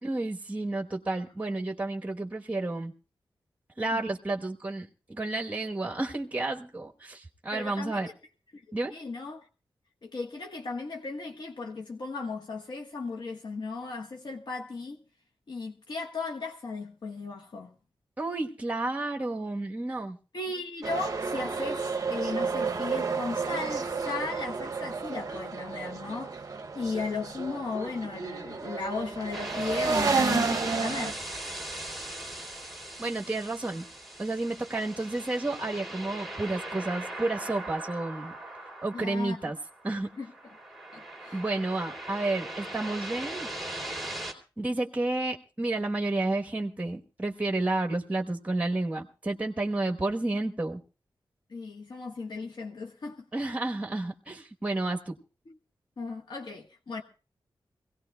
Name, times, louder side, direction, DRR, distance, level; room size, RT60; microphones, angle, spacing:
voice 1, 0.0-2.9 3.8-8.1 8.7-8.9 18.2-20.2 33.0-33.8 34.2-38.4 38.8-39.6 39.8-40.1 41.3-43.5 44.6-50.8 53.3-55.2, right 2 dB, 15° right, 1.1 m, -31 dB
voice 2, 7.5-8.1 8.5-9.4 10.0-15.0 15.5-17.7 20.3-26.5 26.7-31.2 38.9-39.4 40.2-40.3 40.9-41.4 51.5-53.2 55.5-55.6 56.0-57.0, left 3 dB, 60° left, 1.3 m, -36 dB
sound 1, 20.8-31.1, right 4 dB, 40° right, 0.7 m, -31 dB
sound 2, 29.3-44.3, right 1 dB, ahead, 2.5 m, -39 dB
24.5 x 17.0 x 2.2 m
wide cardioid pair, 140°, 9 cm